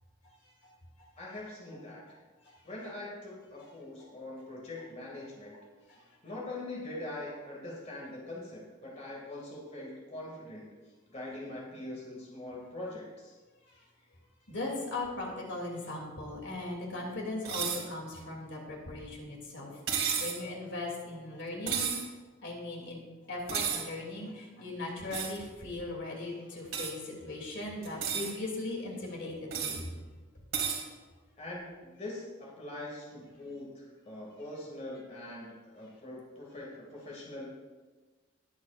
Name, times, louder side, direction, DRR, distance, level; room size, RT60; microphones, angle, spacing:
voice 1, 1.2-2.0 2.6-5.6 6.2-10.7 11.1-13.3 31.4-37.5, left 1 dB, 35° left, -4 dB, 2.4 m, -43 dB
voice 2, 14.5-21.9 22.4-23.0 23.3-29.9, left 2 dB, 60° left, -1 dB, 2.9 m, -38 dB
sound 1, 17.4-17.8 19.9-20.4 21.7-22.0 23.5-23.8 25.1-25.4 26.7-26.9 27.8-28.3 29.5-29.8 30.5-30.8, right 7 dB, 75° right, 2.4 m, -32 dB
20.5 x 8.3 x 2.6 m, 1.3 s
head